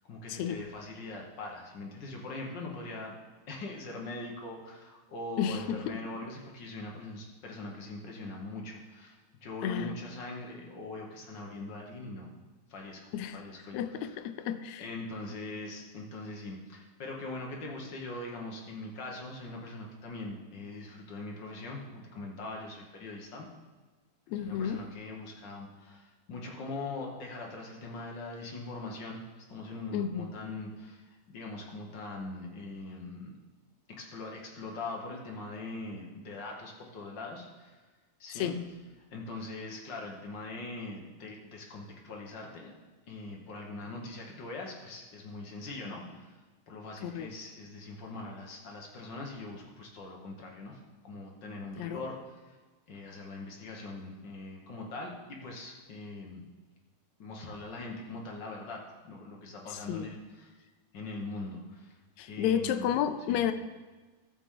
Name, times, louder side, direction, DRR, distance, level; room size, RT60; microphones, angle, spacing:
voice 1, 0.1-3.1 3.5-12.3 12.7-14.2 14.8-23.5 24.3-33.3 33.9-37.8 38.2-38.6 39.1-42.7 43.1-46.3 46.7-52.2 52.5-52.6 52.9-56.4 57.2-60.6 60.9-62.0 62.3-62.9 63.3-63.5, left 2 dB, 50° left, 0 dB, 1.5 m, -42 dB
voice 2, 13.7-14.8 24.3-24.8 29.9-30.3 38.4-38.6 47.0-47.3 51.8-52.0 59.9-60.1 62.2-63.5, left 9 dB, 80° left, 10 dB, 1.8 m, -31 dB
13.0 x 7.0 x 3.8 m, 1.3 s
omnidirectional pair, 3.4 m